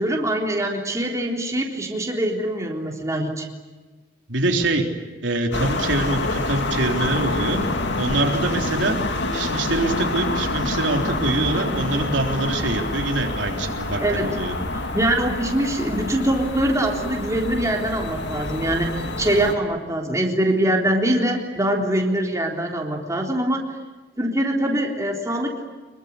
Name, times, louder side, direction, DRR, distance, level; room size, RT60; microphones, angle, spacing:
voice 1, 0.0-3.5 14.0-14.4 14.7-23.7 24.2-25.6, right 1 dB, 15° right, 1 dB, 3.7 m, -23 dB
voice 2, 4.3-4.9 5.2-7.6 8.0-9.0 9.3-14.5, right 2 dB, 80° right, 2 dB, 3.6 m, -24 dB
sound 1, 5.5-19.5, left 2 dB, 70° left, 2.6 m, -27 dB
25.5 x 22.5 x 9.8 m, 1.3 s
head